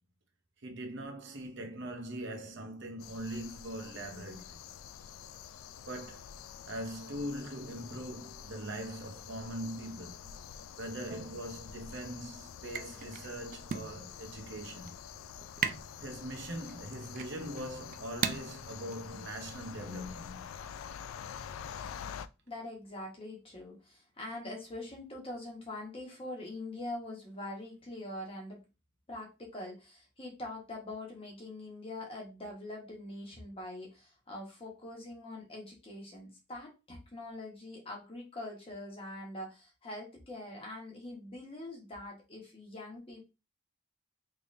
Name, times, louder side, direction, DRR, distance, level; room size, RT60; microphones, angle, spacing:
voice 1, 0.6-4.6 5.9-6.3 6.6-10.3 10.8-15.0 16.0-20.5, right 1 dB, 60° right, 0.8 m, -41 dB
sound 1, 3.0-22.3, left 8 dB, 85° left, 0.3 m, -47 dB
sound 2, 11.1-19.9, right 7 dB, 40° right, 0.3 m, -41 dB
voice 2, 22.5-28.6 29.1-43.2, left 1 dB, 30° left, 1.3 m, -43 dB
3.4 x 3.3 x 2.6 m
head